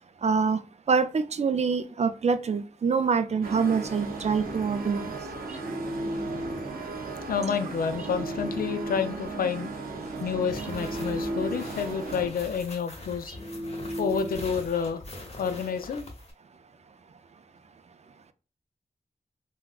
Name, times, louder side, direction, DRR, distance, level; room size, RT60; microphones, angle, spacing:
voice 1, 0.2-0.6 0.9-5.2, right 5 dB, 50° right, 0.4 m, -25 dB
sound 1, 3.4-12.3, right 3 dB, 90° right, 0.6 m, -36 dB
sound 2, 5.5-6.8 8.0-9.3 10.6-11.9 13.3-14.6, equal, 10° right, 0.8 m, -35 dB
voice 2, 7.3-9.7 10.2-13.3 14.0-15.0 15.4-16.0, left 6 dB, 90° left, 0.4 m, -29 dB
sound 3, 10.5-16.3, left 1 dB, 45° left, 0.9 m, -43 dB
3.5 x 2.2 x 2.3 m
cardioid pair, 50°, 15 cm